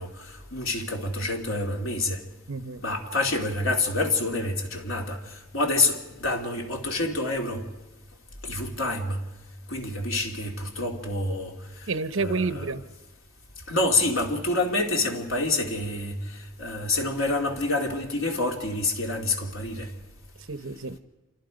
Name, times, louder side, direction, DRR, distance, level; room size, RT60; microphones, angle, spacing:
voice 1, 0.0-2.2 2.8-7.6 8.4-9.2 9.7-11.9 12.2-12.7 13.7-19.9, left 2 dB, 75° left, 2.8 m, -27 dB
voice 2, 2.5-2.8 11.9-12.8 20.5-21.0, right 3 dB, 65° right, 0.9 m, -29 dB
28.0 x 25.0 x 5.2 m
head